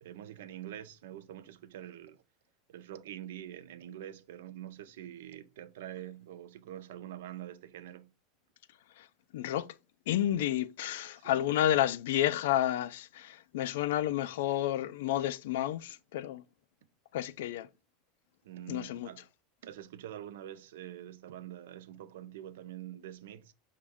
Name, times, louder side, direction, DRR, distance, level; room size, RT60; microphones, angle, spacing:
voice 1, 0.0-2.2 2.7-8.1 11.1-11.3 18.4-19.3 19.6-23.5, right 12 dB, 85° right, 0.4 m, -45 dB
voice 2, 9.3-9.7 10.1-16.4 17.1-17.7 18.7-19.1, left 12 dB, 80° left, 0.3 m, -30 dB
6.0 x 2.2 x 3.5 m
supercardioid pair, 155°, 0 cm